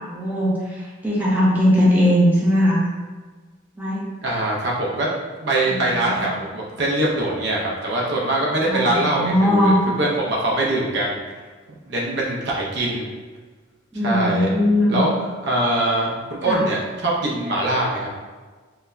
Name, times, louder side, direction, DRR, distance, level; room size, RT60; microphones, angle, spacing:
voice 1, 0.1-0.5 1.0-2.8 3.8-4.1 5.7-6.3 8.7-9.8 13.9-15.0 16.5-16.6, equal, 10° right, -7 dB, 0.5 m, -19 dB
voice 2, 4.2-5.1 5.4-11.2 11.7-13.1 14.0-14.5 14.9-18.1, right 1 dB, 55° right, -3 dB, 0.6 m, -23 dB
3.9 x 2.2 x 2.5 m, 1.4 s
head